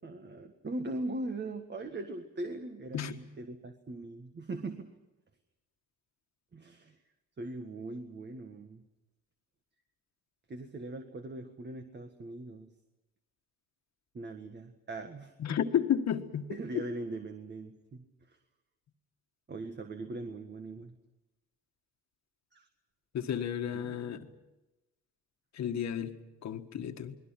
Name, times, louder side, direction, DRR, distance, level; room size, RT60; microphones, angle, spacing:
voice 1, 0.0-4.9 6.5-6.9 7.4-8.8 10.5-12.7 14.1-15.3 16.5-18.0 19.5-20.9 22.5-22.6 23.7-24.3, right 2 dB, 35° right, 6 dB, 1.7 m, -40 dB
voice 2, 15.4-16.8 23.1-24.3 25.5-27.2, left 9 dB, 65° left, 7 dB, 1.7 m, -32 dB
29.0 x 20.5 x 6.0 m, 1.0 s
cardioid pair, 90°, 30 cm